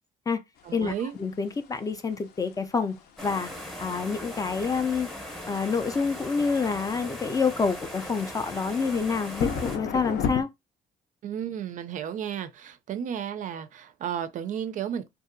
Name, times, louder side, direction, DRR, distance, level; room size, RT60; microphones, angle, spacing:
sound 1, 0.6-10.4, left 6 dB, 65° left, 0.6 m, -36 dB
voice 1, 0.6-1.2 11.2-15.1, right 9 dB, 50° right, 0.4 m, -33 dB
voice 2, 1.2-3.5 3.8-5.1 5.5-10.5, left 5 dB, 20° left, 0.3 m, -27 dB
sound 2, 3.2-9.8, left 1 dB, ahead, 0.7 m, -39 dB
2.7 x 2.4 x 2.5 m
cardioid pair, 110°, 17 cm